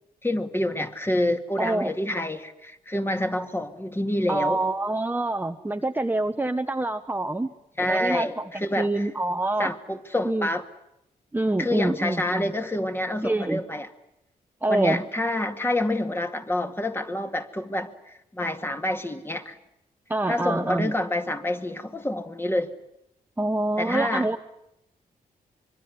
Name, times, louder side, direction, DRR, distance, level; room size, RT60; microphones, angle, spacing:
voice 1, 0.2-4.6 7.8-9.1 9.6-10.6 11.6-13.9 14.7-19.6 20.3-22.7 23.8-24.3, left 1 dB, 15° left, 7 dB, 2.2 m, -27 dB
voice 2, 1.6-1.9 4.3-7.5 7.9-8.5 8.8-9.7 10.2-10.5 11.3-12.5 13.2-13.6 14.6-15.0 20.1-20.9 23.4-24.4, right 2 dB, 10° right, 7 dB, 1.1 m, -26 dB
25.5 x 23.0 x 9.6 m, 0.81 s
cardioid pair, 105°, 15 cm